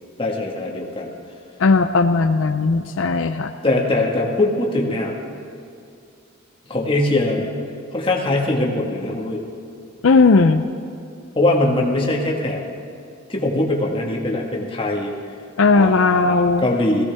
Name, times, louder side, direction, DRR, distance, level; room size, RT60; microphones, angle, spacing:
voice 1, 0.2-1.1 3.6-5.1 6.7-7.5 7.9-9.4 11.3-12.6 13.3-15.1 15.7-17.0, left 2 dB, 25° left, -1 dB, 1.7 m, -21 dB
voice 2, 1.6-3.5 10.0-10.7 15.6-16.7, left 4 dB, 70° left, 8 dB, 0.5 m, -16 dB
18.5 x 16.0 x 3.5 m, 2.5 s
head